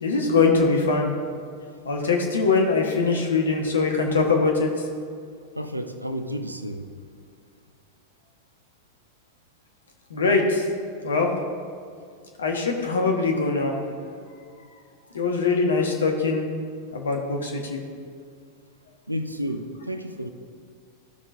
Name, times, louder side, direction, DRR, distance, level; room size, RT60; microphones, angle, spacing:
voice 1, 0.0-1.1 1.8-4.7 10.1-10.6 11.0-11.3 12.4-13.8 15.1-16.4 16.9-17.8, left 4 dB, 70° left, 1 dB, 1.3 m, -22 dB
voice 2, 5.6-6.9 19.1-20.3, equal, 85° right, 8 dB, 0.6 m, -31 dB
15.0 x 6.1 x 2.6 m, 2.2 s
figure-of-eight pair, 90°, 0 cm